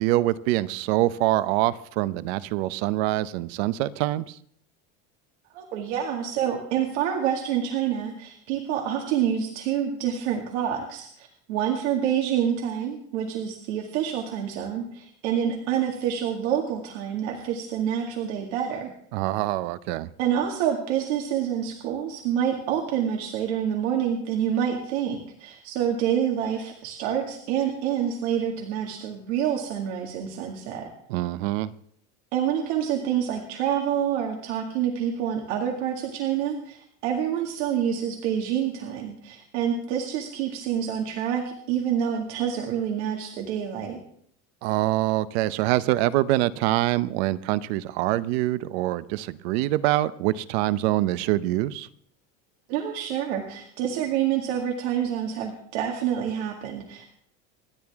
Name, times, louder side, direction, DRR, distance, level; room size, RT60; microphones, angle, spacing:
voice 1, 0.0-4.4 19.1-20.1 31.1-31.7 44.6-51.9, right 16 dB, 70° right, 16 dB, 0.8 m, -25 dB
voice 2, 5.5-18.9 20.2-30.9 32.3-44.0 52.7-57.1, right 9 dB, 85° right, 1 dB, 2.2 m, -27 dB
27.0 x 10.5 x 3.6 m, 0.65 s
cardioid pair, 170°, 33 cm